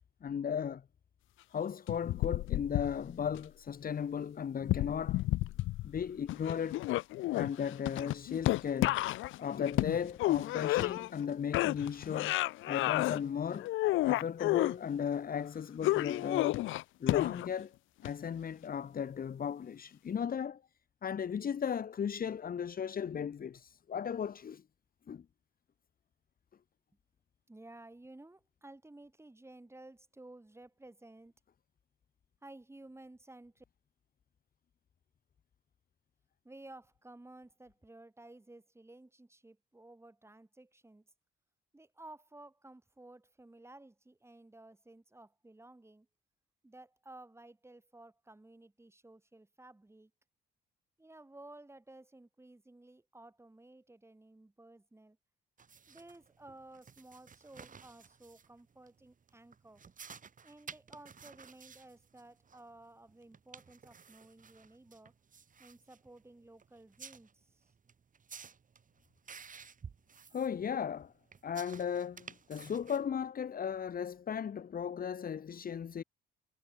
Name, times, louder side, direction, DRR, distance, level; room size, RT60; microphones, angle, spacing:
voice 1, 0.2-0.8 1.5-5.2 5.8-6.8 7.3-9.0 9.4-12.4 12.6-13.7 14.0-16.6 17.0-17.8 18.0-20.6 21.0-24.6 25.1-25.2 70.3-71.1 71.4-76.0, left 7 dB, 45° left, 1.7 m, -36 dB
sound 1, 1.9-3.4 4.6-6.0 6.3-11.2 11.5-13.2 13.6-14.8 15.8-17.6 18.1-18.2, left 17 dB, 80° left, 0.5 m, -31 dB
voice 2, 27.5-31.3 32.4-33.6 36.4-41.1 41.7-46.1 46.6-50.1 51.0-55.2 55.9-59.8 60.4-65.1 65.6-67.7, right 2 dB, 15° right, 7.8 m, -55 dB
sound 2, 55.6-73.1, right 6 dB, 40° right, 5.0 m, -54 dB
cardioid pair, 90°, 20 cm